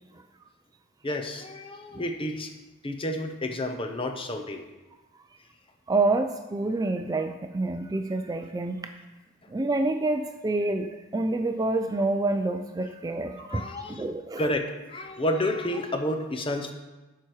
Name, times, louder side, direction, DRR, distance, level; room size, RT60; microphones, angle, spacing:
voice 1, 1.0-2.5 2.8-4.6 13.4-14.1 14.4-16.7, left 1 dB, 25° left, 5 dB, 0.7 m, -30 dB
voice 2, 5.9-8.9 9.5-13.6 13.9-14.5, right 2 dB, 20° right, 6 dB, 0.3 m, -27 dB
11.5 x 4.7 x 4.6 m, 1.1 s
head